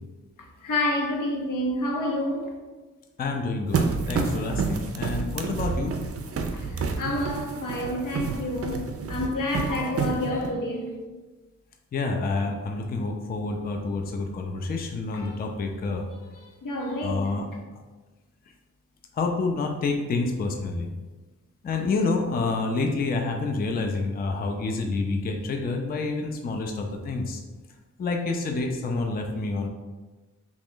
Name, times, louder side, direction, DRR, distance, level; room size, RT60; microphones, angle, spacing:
voice 1, 0.6-2.5 6.5-10.9 15.1-15.4 16.4-17.3, left 1 dB, 75° left, 0.7 m, -29 dB
voice 2, 3.2-6.0 11.9-16.0 17.0-17.5 19.1-20.9 21.6-27.4 28.0-29.7, left 3 dB, 30° left, 0.4 m, -28 dB
sound 1, 3.7-10.5, right 5 dB, 45° right, 0.4 m, -29 dB
3.0 x 2.4 x 3.6 m
cardioid pair, 75°, 33 cm